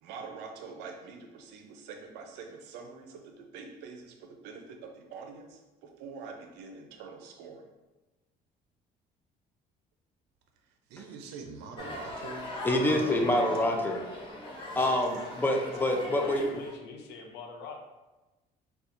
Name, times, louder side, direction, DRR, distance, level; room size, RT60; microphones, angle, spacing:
voice 1, 0.0-7.7 10.9-12.5 12.8-13.3 14.7-15.0, right 5 dB, 90° right, 0.5 m, -45 dB
sound 1, 11.8-16.7, left 1 dB, 30° left, 0.9 m, -40 dB
voice 2, 12.6-14.0 14.8-16.5, left 1 dB, 10° left, 0.4 m, -26 dB
voice 3, 16.0-17.8, left 4 dB, 85° left, 0.6 m, -44 dB
4.2 x 2.3 x 2.5 m
cardioid pair, 110°, 17 cm